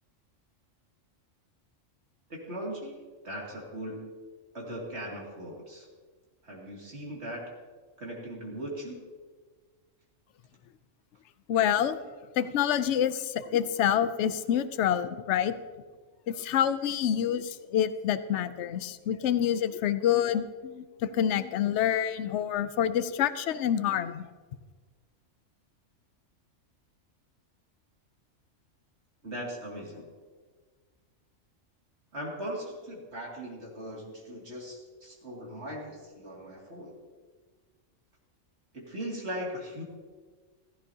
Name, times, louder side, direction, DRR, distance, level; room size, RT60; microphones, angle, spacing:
voice 1, 2.3-4.1 4.5-5.9 6.4-7.5 8.0-9.1 29.2-30.1 32.1-37.0 38.7-39.8, equal, 55° right, -3 dB, 2.8 m, -39 dB
voice 2, 11.5-12.0 12.4-15.5 16.3-24.2, left 10 dB, 70° left, 13 dB, 0.9 m, -27 dB
15.5 x 15.5 x 2.8 m, 1.5 s
omnidirectional pair, 1.3 m